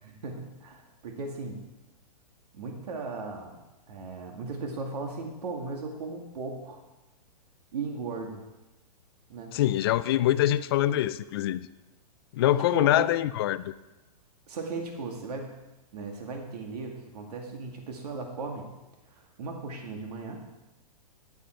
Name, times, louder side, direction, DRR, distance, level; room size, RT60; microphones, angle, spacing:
voice 1, 0.0-1.7 2.5-3.6 3.9-6.8 7.7-8.4 9.3-9.6 12.4-13.1 14.5-15.5 15.9-18.7 19.1-20.4, right 3 dB, 70° right, 2 dB, 2.0 m, -37 dB
voice 2, 9.5-11.7 12.3-13.7, left 13 dB, 40° left, 15 dB, 0.4 m, -24 dB
10.5 x 9.1 x 4.5 m, 1.0 s
hypercardioid pair, 160°, 21 cm